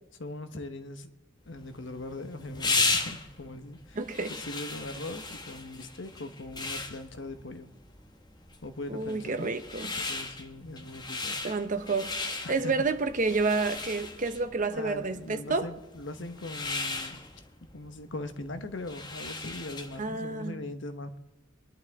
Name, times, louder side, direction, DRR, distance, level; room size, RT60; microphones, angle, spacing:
voice 1, 0.2-1.1 1.5-4.0 4.3-7.7 8.6-9.5 9.9-11.4 12.4-12.7 14.7-17.2 17.7-21.2, left 2 dB, 70° left, 1.1 m, -40 dB
sound 1, 1.6-20.1, left 3 dB, 20° left, 1.3 m, -36 dB
voice 2, 3.9-4.3 8.9-9.9 11.4-15.7 20.0-20.6, right 3 dB, 45° right, 0.9 m, -30 dB
24.0 x 11.0 x 3.6 m
head